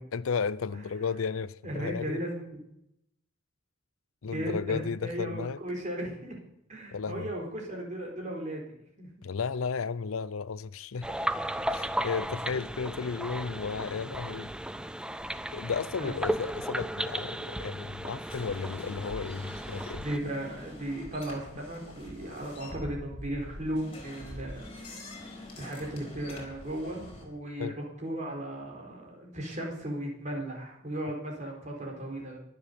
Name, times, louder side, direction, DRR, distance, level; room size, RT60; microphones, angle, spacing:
voice 1, 0.1-2.2 4.2-5.6 6.9-7.3 9.2-11.1 11.7-14.5 15.5-20.0 27.6-27.8, left 5 dB, 75° left, 0.5 m, -34 dB
voice 2, 1.6-2.4 4.2-6.4 6.7-9.1 15.4-15.5 16.0-16.1 20.0-24.7 25.6-32.4, right 1 dB, 35° right, 4.3 m, -36 dB
sound 1, 11.0-20.2, right 1 dB, 5° right, 0.5 m, -35 dB
sound 2, 18.3-27.2, left 1 dB, 25° left, 4.3 m, -45 dB
22.5 x 7.8 x 6.9 m
head